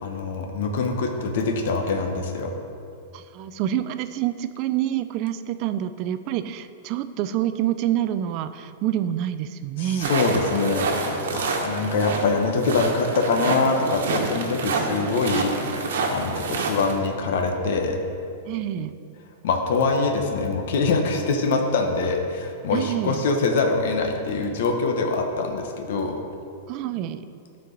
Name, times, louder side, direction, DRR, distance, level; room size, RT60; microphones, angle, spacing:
voice 1, 0.0-2.5 9.8-18.0 19.4-26.2, left 3 dB, 60° left, 3 dB, 0.9 m, -24 dB
voice 2, 3.1-10.1 18.5-19.0 22.7-23.2 26.7-27.2, right 11 dB, 35° right, 11 dB, 0.3 m, -27 dB
sound 1, 10.0-16.9, right 3 dB, 80° right, 1.2 m, -28 dB
13.0 x 4.5 x 3.9 m, 2.5 s
supercardioid pair, 165°, 0 cm